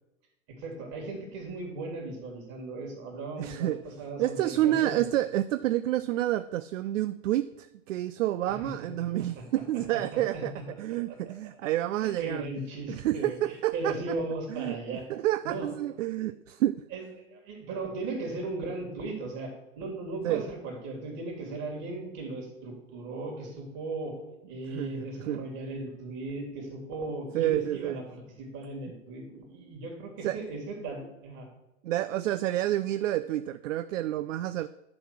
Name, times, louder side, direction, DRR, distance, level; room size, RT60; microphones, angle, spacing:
voice 1, 0.6-5.0 8.5-9.4 10.1-10.6 11.1-11.2 12.0-15.0 15.4-15.7 16.2-16.3 16.9-17.0 17.3-24.1 24.5-31.5, right 2 dB, 45° right, 3.1 m, -37 dB
voice 2, 3.4-3.8 4.2-10.5 10.8-12.5 12.9-14.2 14.5-14.8 15.1-16.8 20.2-20.5 24.7-25.4 27.3-28.0 30.2-30.4 31.8-34.7, right 14 dB, 70° right, 0.5 m, -29 dB
10.5 x 4.1 x 6.0 m
hypercardioid pair, 105°, 40 cm